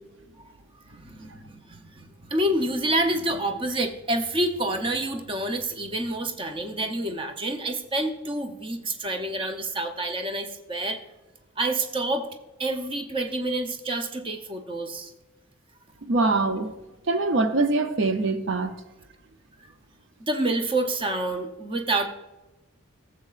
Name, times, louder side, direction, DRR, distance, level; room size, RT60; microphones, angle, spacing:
voice 1, 0.9-2.0 2.3-11.0 11.6-12.3 12.6-15.1 20.3-22.1, right 1 dB, 25° right, 6 dB, 0.7 m, -28 dB
voice 2, 16.0-16.7 17.1-18.7, right 3 dB, 60° right, 8 dB, 0.6 m, -23 dB
15.0 x 7.6 x 2.4 m, 1.0 s
head